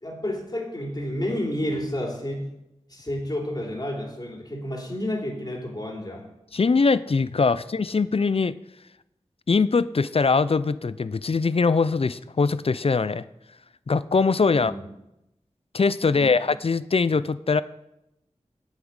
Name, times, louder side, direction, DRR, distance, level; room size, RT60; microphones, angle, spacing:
voice 1, 0.0-2.5 2.9-6.3 14.5-14.8 16.1-16.4, left 1 dB, 35° left, 0 dB, 3.2 m, -30 dB
voice 2, 6.5-8.5 9.5-13.2 13.9-14.7 15.7-17.6, left 4 dB, 50° left, 17 dB, 0.5 m, -22 dB
9.2 x 7.3 x 8.1 m, 0.88 s
wide cardioid pair, 45°, 12 cm